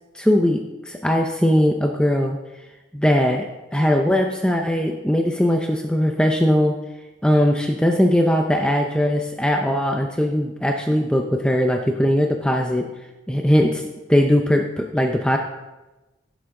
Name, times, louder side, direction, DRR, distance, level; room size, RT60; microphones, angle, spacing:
voice 1, 0.1-2.4 2.9-3.5 3.7-6.8 7.2-12.9 13.3-13.8 14.1-15.4, equal, 5° left, 2 dB, 0.6 m, -20 dB
16.0 x 7.1 x 3.8 m, 1.1 s
head